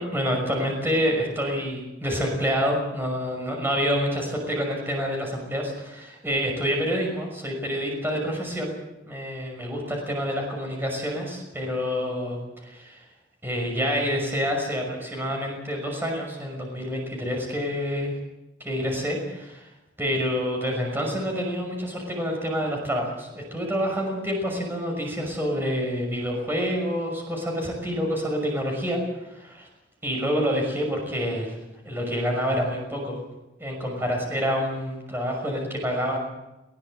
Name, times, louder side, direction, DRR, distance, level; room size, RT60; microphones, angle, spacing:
voice 1, 0.0-8.7 9.1-13.0 13.4-18.2 18.6-19.7 20.0-29.7 30.0-31.6 31.8-33.2 33.6-36.2, equal, 10° right, 1 dB, 6.0 m, -27 dB
20.5 x 18.5 x 7.8 m, 0.96 s
head